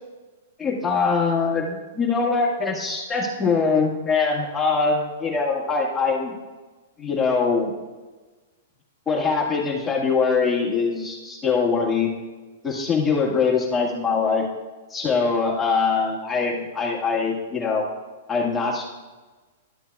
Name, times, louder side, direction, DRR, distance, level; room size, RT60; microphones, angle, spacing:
voice 1, 0.6-6.3 7.0-7.7 9.0-12.1 12.6-14.4 14.9-17.9 18.3-18.8, left 4 dB, 10° left, -3 dB, 1.7 m, -23 dB
12.5 x 7.1 x 2.3 m, 1.3 s
hypercardioid pair, 140°, 0 cm